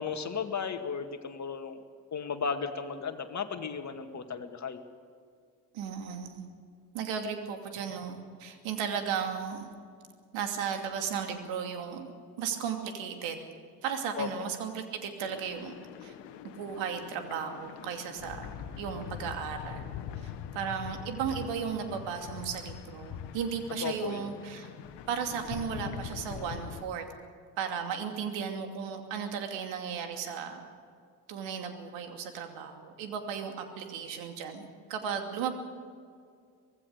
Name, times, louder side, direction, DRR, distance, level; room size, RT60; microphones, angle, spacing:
voice 1, 0.0-1.8 2.1-4.8 14.2-14.3 23.8-24.3, left 6 dB, 35° left, 7 dB, 2.1 m, -35 dB
voice 2, 5.7-6.4 6.9-9.7 10.3-12.1 12.4-13.4 13.8-15.7 16.0-16.1 16.4-18.5 18.8-24.7 25.1-27.1 27.6-30.7 31.3-35.6, right 7 dB, 65° right, 5 dB, 2.7 m, -35 dB
sound 1, 15.2-26.8, left 9 dB, 55° left, 1.5 m, -43 dB
24.5 x 19.0 x 6.7 m, 2.2 s
hypercardioid pair, 55°, 49 cm